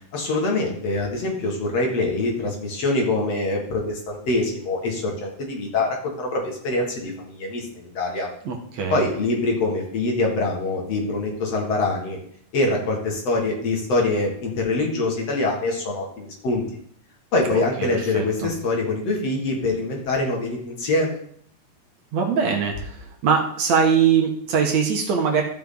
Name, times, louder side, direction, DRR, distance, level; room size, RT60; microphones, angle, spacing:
voice 1, 0.1-8.3 8.9-12.2 12.5-16.6 17.3-21.2, left 2 dB, 55° left, 0 dB, 2.8 m, -24 dB
voice 2, 8.5-9.0 17.5-17.9 18.1-18.5 22.1-25.4, right 6 dB, 65° right, 1 dB, 2.4 m, -22 dB
14.5 x 6.0 x 3.9 m, 0.64 s
omnidirectional pair, 3.7 m